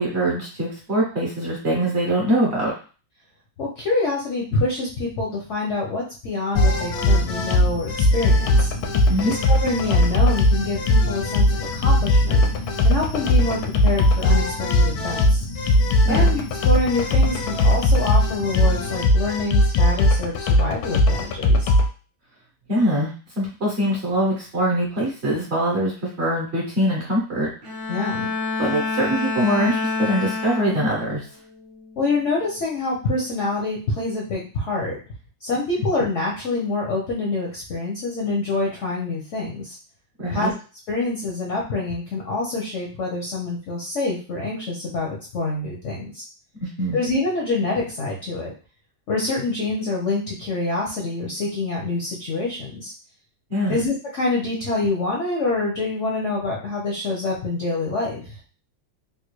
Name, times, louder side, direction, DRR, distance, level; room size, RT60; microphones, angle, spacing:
voice 1, 0.0-2.7 9.1-9.3 16.0-16.2 22.7-23.1 23.4-25.9 26.2-27.5 28.6-31.2 40.2-40.5 46.6-47.0 53.5-53.8, equal, 50° right, -3 dB, 0.8 m, -23 dB
voice 2, 3.6-8.7 9.2-12.4 12.8-15.5 16.0-21.7 27.9-28.3 32.0-35.0 35.4-39.8 40.3-40.5 40.9-46.2 46.9-48.5 49.1-52.9 53.7-58.4, left 3 dB, 65° left, -2 dB, 0.7 m, -26 dB
sound 1, 6.6-21.9, left 1 dB, 85° left, 1.4 m, -19 dB
Bowed string instrument, 27.6-31.2 31.7-32.0, left 4 dB, 90° right, 0.5 m, -27 dB
3.7 x 2.3 x 3.0 m, 0.36 s
omnidirectional pair, 2.2 m